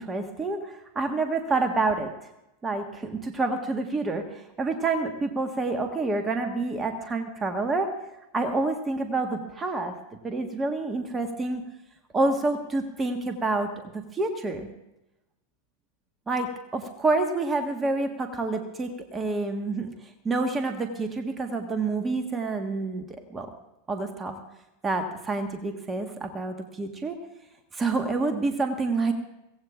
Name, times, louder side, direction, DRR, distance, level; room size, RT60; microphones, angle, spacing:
voice 1, 0.0-2.1 2.6-7.9 8.3-9.9 10.2-11.6 12.1-14.7 16.3-19.9 20.2-23.5 23.9-24.3 24.8-27.2 27.7-29.1, right 3 dB, 15° right, 6 dB, 1.5 m, -28 dB
23.0 x 17.0 x 2.5 m, 0.91 s
figure-of-eight pair, 90°, 0 cm